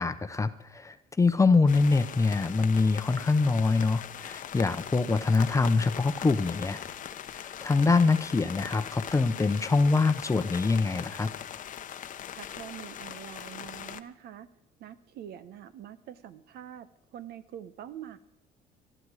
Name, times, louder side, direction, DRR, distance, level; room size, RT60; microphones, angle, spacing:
voice 1, 0.0-6.8 7.3-11.3, left 4 dB, 20° left, 10 dB, 0.8 m, -24 dB
sound 1, 1.7-14.0, left 10 dB, 50° left, 0.8 m, -40 dB
voice 2, 12.3-14.5 14.8-18.2, right 10 dB, 70° right, 13 dB, 1.0 m, -45 dB
20.0 x 12.0 x 4.9 m, 0.82 s
cardioid pair, 110°, 17 cm